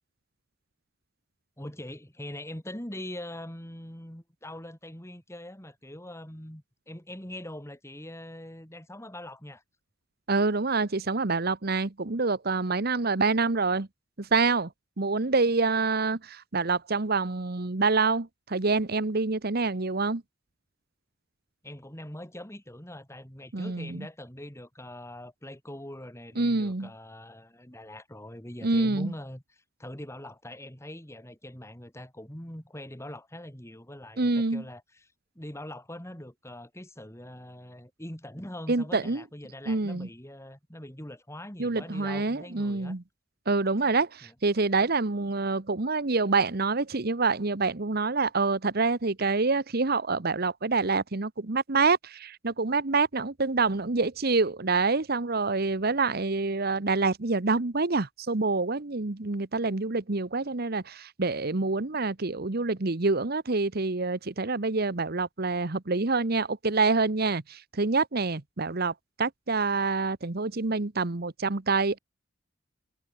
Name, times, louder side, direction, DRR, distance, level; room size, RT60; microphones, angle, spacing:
voice 1, 1.6-9.6 21.6-35.1 35.3-42.9 44.2-44.3, left 1 dB, 15° left, 4.2 m, -42 dB
voice 2, 10.3-13.9 14.2-14.7 15.0-20.2 23.5-24.1 26.4-26.9 28.6-29.1 34.2-34.6 38.7-39.2 39.7-40.1 41.6-43.0 43.5-72.0, right 3 dB, 55° right, 1.1 m, -26 dB
head